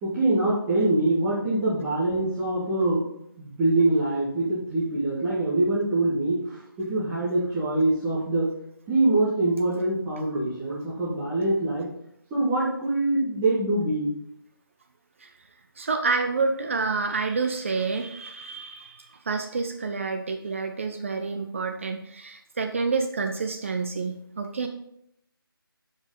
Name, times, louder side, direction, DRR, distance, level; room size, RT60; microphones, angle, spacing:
voice 1, 0.0-3.0 3.4-8.5 8.9-11.9 12.3-14.1, right 2 dB, 10° right, -11 dB, 1.8 m, -24 dB
voice 2, 15.8-24.7, right 4 dB, 35° right, 5 dB, 0.7 m, -28 dB
11.5 x 5.4 x 3.9 m, 0.75 s
figure-of-eight pair, 160°, 12 cm